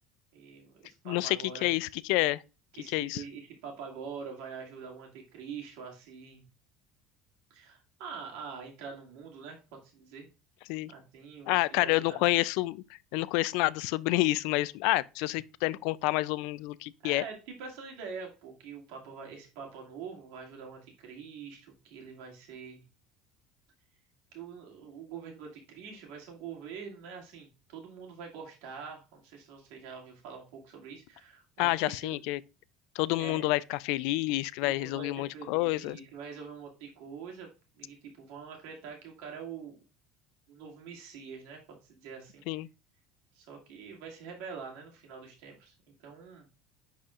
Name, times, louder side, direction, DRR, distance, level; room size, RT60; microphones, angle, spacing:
voice 1, 0.3-1.7 2.8-6.4 7.5-9.6 9.9-10.3 10.9-12.2 17.0-22.8 24.3-32.2 33.2-33.5 34.6-37.5 37.8-39.8 40.5-41.6 41.9-42.4 43.3-45.7 46.0-46.5, right 6 dB, 85° right, 2.3 m, -45 dB
voice 2, 1.0-2.4 2.9-3.2 10.7-10.9 11.5-12.8 13.1-17.2 31.6-32.4 33.0-36.0 42.5-42.7, left 19 dB, 75° left, 0.3 m, -28 dB
10.0 x 4.2 x 2.4 m
cardioid pair, 155°, 0 cm